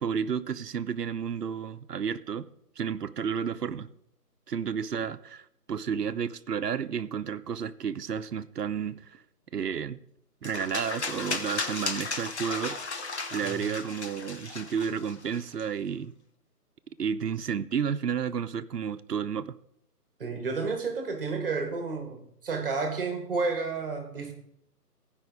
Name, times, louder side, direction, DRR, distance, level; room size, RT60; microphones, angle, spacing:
voice 1, 0.0-2.5 2.8-3.9 4.5-5.4 5.7-9.1 9.5-10.0 10.4-12.8 13.3-16.1 17.0-19.5, right 7 dB, 75° right, 0.7 m, -31 dB
sound 1, 10.4-15.6, left 3 dB, 45° left, 1.2 m, -35 dB
voice 2, 20.2-24.3, right 4 dB, 35° right, 1.5 m, -31 dB
15.5 x 5.3 x 5.0 m
figure-of-eight pair, 155°, 48 cm